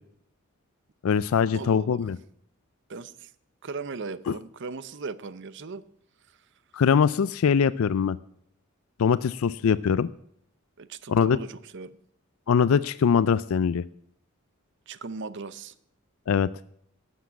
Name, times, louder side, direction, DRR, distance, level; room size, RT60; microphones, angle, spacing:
voice 1, 1.0-2.2 4.3-4.4 6.7-8.2 9.0-10.1 11.1-11.4 12.5-13.8 16.3-16.5, left 6 dB, 80° left, 17 dB, 0.4 m, -22 dB
voice 2, 1.5-2.0 2.9-3.3 3.6-5.8 6.3-6.4 10.8-11.9 14.9-15.7, right 4 dB, 60° right, 16 dB, 0.7 m, -38 dB
12.0 x 7.4 x 8.3 m, 0.71 s
head